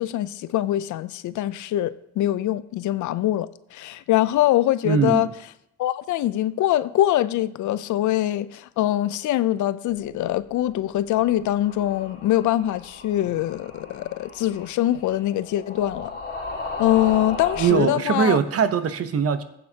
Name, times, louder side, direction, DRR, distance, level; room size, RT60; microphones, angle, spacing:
voice 1, 0.0-5.3 5.8-16.2 16.8-18.4, left 13 dB, 75° left, 0.5 m, -23 dB
voice 2, 4.8-5.2 17.6-19.4, right 7 dB, 50° right, 0.9 m, -21 dB
sound 1, 11.2-17.9, left 3 dB, 35° left, 3.8 m, -36 dB
14.5 x 8.3 x 2.9 m
cardioid pair, 90°, 30 cm